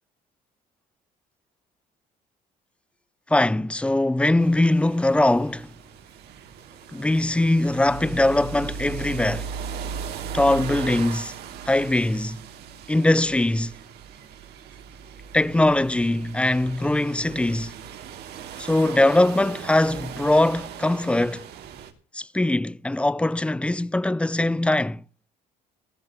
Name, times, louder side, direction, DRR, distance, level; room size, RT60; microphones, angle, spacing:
voice 1, 3.3-5.7 6.9-9.5 10.3-11.3 11.7-12.4 12.9-13.7 15.3-17.7 18.6-21.4 22.1-25.0, left 1 dB, 5° left, 0.6 m, -21 dB
sound 1, 4.4-21.9, right 7 dB, 75° right, 2.9 m, -38 dB
17.0 x 13.0 x 3.1 m
cardioid pair, 110°, 17 cm